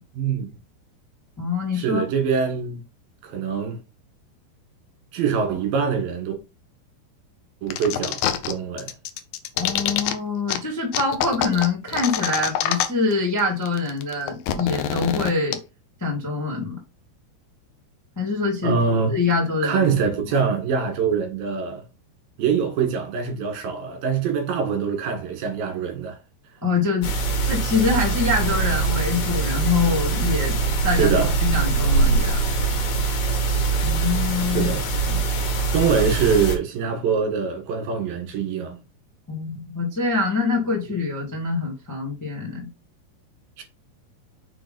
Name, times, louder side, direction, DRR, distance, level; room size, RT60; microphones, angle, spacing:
voice 1, 0.1-0.5 1.7-2.8 3.2-3.8 5.1-6.4 7.6-8.9 18.6-19.1 19.6-21.8 22.4-26.2 30.9-31.3 34.5-34.9 35.7-38.8 43.6-43.7, right 6 dB, 60° right, 3.1 m, -24 dB
voice 2, 1.4-2.0 9.6-15.6 16.0-16.8 18.1-18.8 19.1-19.9 26.6-27.1 27.5-30.5 30.8-32.4 33.8-34.7 35.1-35.2 39.3-42.7, left 3 dB, 20° left, 0.4 m, -24 dB
sound 1, 7.7-8.5 8.8-10.1 10.5-10.6 10.9-13.1 13.4-13.5 13.7-15.5, left 11 dB, 80° left, 2.0 m, -25 dB
sound 2, 27.0-36.6, right 4 dB, 65° left, 3.4 m, -23 dB
6.8 x 3.8 x 5.2 m
omnidirectional pair, 5.1 m